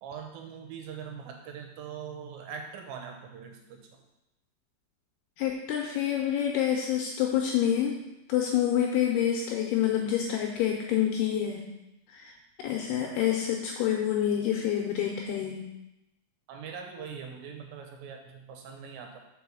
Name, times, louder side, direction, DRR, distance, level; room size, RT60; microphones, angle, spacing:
voice 1, 0.0-4.0 16.5-19.2, right 6 dB, 80° right, 3 dB, 3.2 m, -42 dB
voice 2, 5.4-8.0 8.3-11.6 12.1-12.3 12.6-15.6, left 10 dB, 90° left, 0 dB, 2.3 m, -27 dB
5.5 x 5.3 x 6.1 m, 0.92 s
omnidirectional pair, 5.2 m